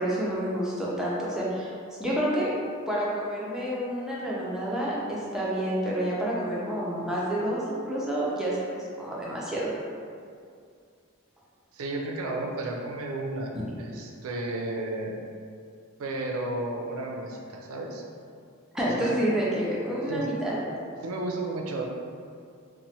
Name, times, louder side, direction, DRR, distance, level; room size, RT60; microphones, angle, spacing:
voice 1, 0.0-1.7 2.0-2.5 2.9-9.7 18.7-20.6, right 1 dB, 5° right, -7 dB, 0.4 m, -29 dB
voice 2, 11.7-15.2 16.0-18.0 18.9-19.2 20.1-20.3 21.0-21.8, right 2 dB, 80° right, 1 dB, 0.4 m, -33 dB
2.9 x 2.1 x 2.7 m, 2.3 s
head